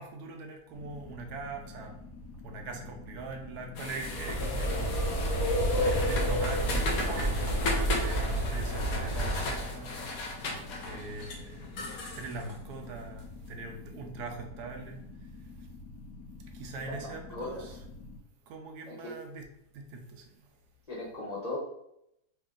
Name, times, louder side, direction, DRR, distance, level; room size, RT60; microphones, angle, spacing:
voice 1, 0.0-1.9 2.4-5.0 5.8-10.0 10.8-11.8 12.2-15.1 16.5-17.8 18.5-20.2, right 3 dB, 80° right, 3 dB, 1.2 m, -42 dB
sound 1, 0.7-18.2, left 3 dB, 85° left, 1.2 m, -47 dB
sound 2, 3.8-13.3, left 3 dB, 65° left, 1.1 m, -37 dB
sound 3, 4.0-9.9, right 1 dB, 25° right, 0.8 m, -30 dB
voice 2, 16.8-17.8 18.9-19.2 20.9-21.6, left 2 dB, 30° left, -7 dB, 1.0 m, -38 dB
3.3 x 2.7 x 3.6 m, 0.77 s
omnidirectional pair, 1.7 m